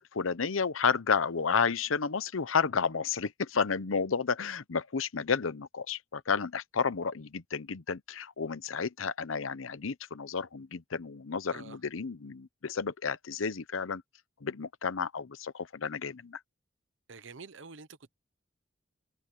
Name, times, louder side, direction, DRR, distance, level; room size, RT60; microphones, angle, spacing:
voice 1, 0.0-14.0 14.4-16.4, left 5 dB, 90° left, 0.8 m, -31 dB
voice 2, 17.1-17.9, right 4 dB, 65° right, 0.9 m, -47 dB
head